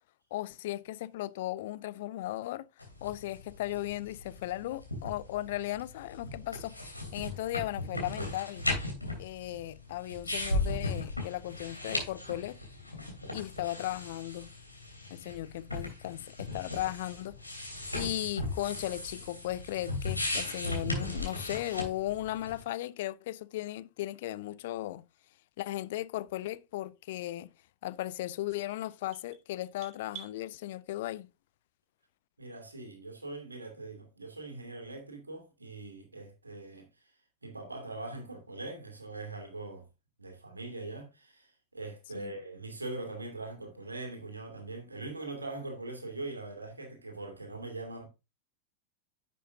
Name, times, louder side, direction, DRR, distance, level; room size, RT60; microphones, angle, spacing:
voice 1, 0.3-8.7 9.2-12.6 13.3-14.5 15.1-25.0 25.6-27.5 27.8-31.3 42.1-42.3, left 15 dB, 55° left, 0.4 m, -36 dB
sound 1, 2.8-22.6, left 2 dB, 85° left, 2.9 m, -37 dB
sound 2, 28.5-30.4, right 8 dB, 40° right, 2.6 m, -49 dB
voice 2, 32.4-37.1 37.4-39.9 40.2-48.0, right 2 dB, 80° right, 2.6 m, -42 dB
10.5 x 7.6 x 2.6 m
figure-of-eight pair, 90°, 0 cm